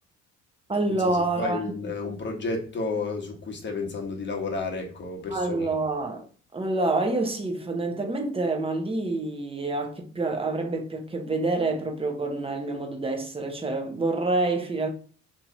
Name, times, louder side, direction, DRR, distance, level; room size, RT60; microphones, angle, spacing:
voice 1, 0.7-1.7 5.3-6.2 6.5-14.9, right 2 dB, 20° right, 0.9 m, -27 dB
voice 2, 1.4-5.8, left 3 dB, 35° left, 1.1 m, -31 dB
2.9 x 2.8 x 3.6 m
cardioid pair, 90°, 30 cm